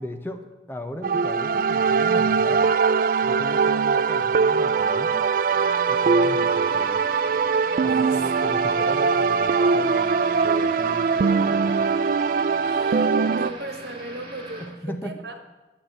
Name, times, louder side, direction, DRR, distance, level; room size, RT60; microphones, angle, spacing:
voice 1, 0.0-2.7 3.2-5.2 5.9-7.1 7.8-11.8 14.6-15.2, equal, 10° left, 6 dB, 0.8 m, -37 dB
sound 1, 1.0-13.5, right 5 dB, 50° right, 0.3 m, -21 dB
sound 2, 5.5-14.7, right 1 dB, 30° right, 2.7 m, -41 dB
voice 2, 7.9-8.2 12.6-14.6 15.0-15.4, right 2 dB, 70° right, 5 dB, 1.5 m, -36 dB
9.6 x 6.8 x 8.8 m, 1.1 s
head